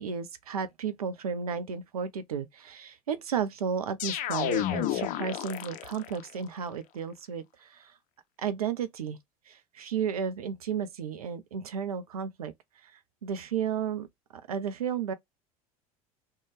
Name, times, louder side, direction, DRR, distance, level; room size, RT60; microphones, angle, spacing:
voice 1, 0.0-8.0 8.4-9.2 9.5-12.5 12.8-14.1 14.5-15.1, right 7 dB, 80° right, 0.5 m, -33 dB
sound 1, 4.0-6.2, left 13 dB, 45° left, 0.4 m, -31 dB
2.6 x 2.2 x 3.2 m
hypercardioid pair, 75°, 19 cm